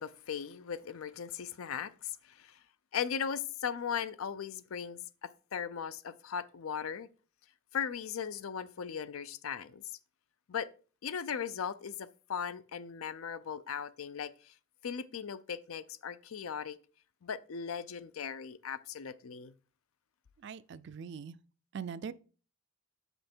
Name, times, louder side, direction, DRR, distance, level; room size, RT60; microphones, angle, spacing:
voice 1, 0.0-2.6 2.9-7.1 7.7-10.0 10.5-10.7 11.0-14.5 14.8-16.8 17.2-19.5, left 7 dB, 80° left, 0.5 m, -38 dB
voice 2, 20.4-21.4 21.7-22.1, right 6 dB, 55° right, 0.3 m, -41 dB
6.2 x 5.4 x 4.4 m
head